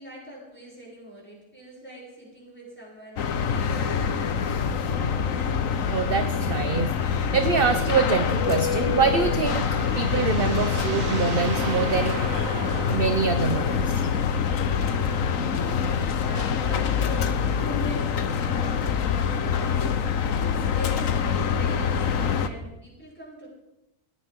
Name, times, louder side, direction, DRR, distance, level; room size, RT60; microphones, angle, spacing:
voice 1, 0.0-4.6 16.2-20.1 20.7-23.5, equal, 10° left, -4 dB, 7.2 m, -43 dB
sound 1, 3.2-22.5, left 6 dB, 75° left, 1.3 m, -25 dB
voice 2, 5.9-12.1 12.9-14.1, right 5 dB, 50° right, 8 dB, 1.0 m, -25 dB
sound 2, 9.2-14.2, right 8 dB, 85° right, 1.3 m, -37 dB
19.5 x 15.5 x 3.7 m, 0.92 s
omnidirectional pair, 1.4 m